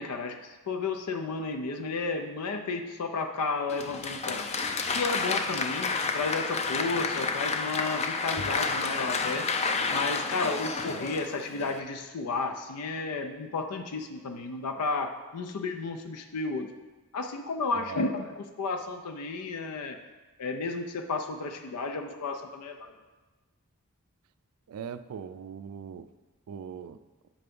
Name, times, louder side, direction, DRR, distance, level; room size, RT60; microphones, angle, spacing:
voice 1, 0.0-4.5 4.9-9.5 9.9-16.7 17.1-20.0 20.4-22.9, left 3 dB, 90° left, 6 dB, 0.5 m, -32 dB
Applause, 3.7-11.8, left 4 dB, 30° left, 0.4 m, -30 dB
voice 2, 17.7-18.0 24.7-26.1 26.5-27.0, right 7 dB, 70° right, 13 dB, 0.3 m, -40 dB
8.4 x 3.4 x 5.3 m, 1.2 s
head